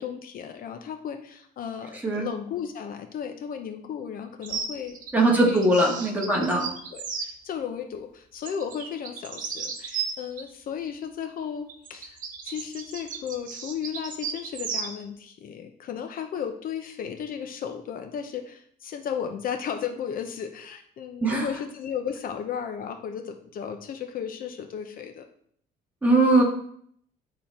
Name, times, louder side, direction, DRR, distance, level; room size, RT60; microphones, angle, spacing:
voice 1, 0.0-5.0 5.4-5.7 6.2-6.5 6.9-12.2 12.4-25.3, left 8 dB, 55° left, 6 dB, 0.8 m, -35 dB
sound 1, 4.4-7.3 8.5-10.5 11.7-15.0, right 6 dB, 50° right, 1.4 m, -35 dB
voice 2, 5.1-6.6 21.2-21.5 26.0-26.4, right 2 dB, 10° right, -2 dB, 2.4 m, -20 dB
10.5 x 4.2 x 4.3 m, 0.65 s
cardioid pair, 110°, 17 cm